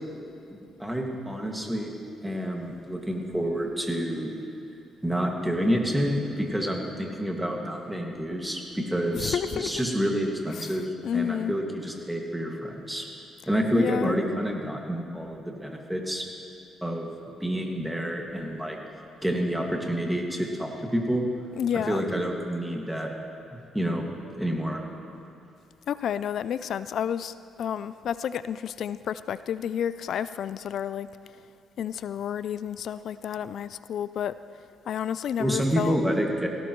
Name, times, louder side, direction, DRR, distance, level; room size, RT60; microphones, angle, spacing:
voice 1, 0.5-1.9 2.2-4.3 5.0-13.1 13.5-16.2 16.8-17.1 17.4-18.8 19.2-21.2 21.7-23.1 23.7-24.1 24.4-24.8 35.4-36.5, equal, 5° right, 0 dB, 2.0 m, -28 dB
voice 2, 9.2-9.8 10.6-11.5 13.7-14.2 21.6-22.1 25.9-31.1 31.8-34.4 34.9-36.0, left 9 dB, 65° left, 15 dB, 0.3 m, -30 dB
17.0 x 17.0 x 3.1 m, 2.7 s
cardioid pair, 90°, 0 cm